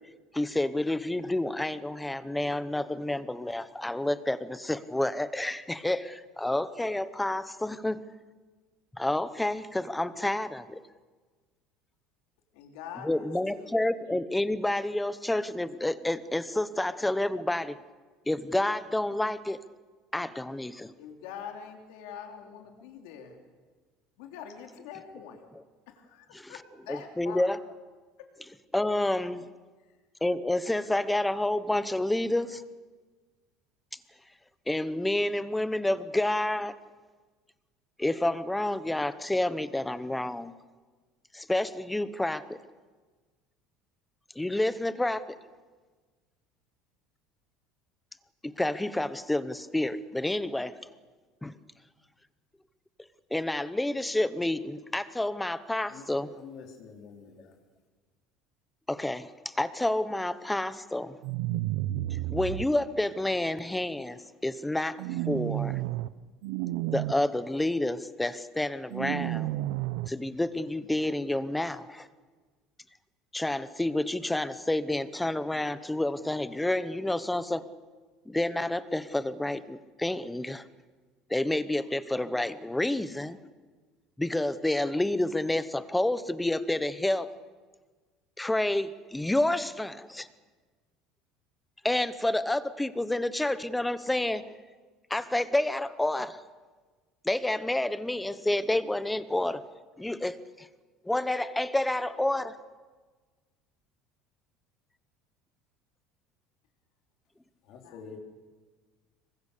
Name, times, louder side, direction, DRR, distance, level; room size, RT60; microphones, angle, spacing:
voice 1, 0.3-8.0 9.0-10.8 13.0-17.8 18.3-19.6 20.1-20.9 26.3-26.5 26.9-27.6 28.7-29.4 30.2-32.6 34.7-36.7 38.0-40.5 41.3-42.4 44.4-45.2 48.4-50.7 51.4-51.5 53.3-56.3 58.9-61.1 62.3-65.8 66.9-69.5 70.1-72.1 73.3-77.6 78.3-80.6 81.3-83.4 84.2-87.3 88.4-90.3 91.8-94.5 95.1-96.4 97.2-99.6 100.0-100.7 101.0-102.6, left 1 dB, 5° left, 14 dB, 0.9 m, -29 dB
voice 2, 12.5-13.7 21.0-23.4 24.2-25.5 25.9-27.5 107.8-108.2, left 7 dB, 80° left, 4 dB, 3.1 m, -44 dB
voice 3, 56.3-57.6 107.6-108.2, left 6 dB, 50° left, 2 dB, 3.8 m, -47 dB
sound 1, 61.2-62.6 65.0-66.1 66.4-67.1 68.9-70.1, right 15 dB, 75° right, 0.9 m, -31 dB
26.5 x 24.0 x 6.8 m, 1.4 s
cardioid pair, 160°, 0 cm